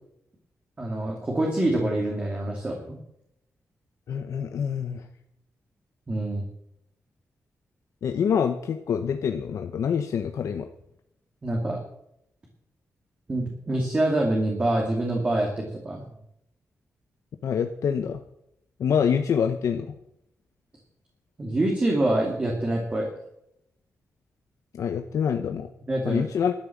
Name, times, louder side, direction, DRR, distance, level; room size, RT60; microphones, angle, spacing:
voice 1, 0.8-3.0 6.1-6.4 11.4-11.8 13.3-16.0 21.4-23.1 25.9-26.2, right 1 dB, 25° right, -1 dB, 2.5 m, -25 dB
voice 2, 4.1-5.1 8.0-10.7 17.4-18.2 18.8-19.9 24.7-25.7 26.0-26.5, left 7 dB, 75° left, 6 dB, 0.9 m, -26 dB
13.0 x 10.5 x 7.3 m, 0.78 s
wide cardioid pair, 160°, 5 cm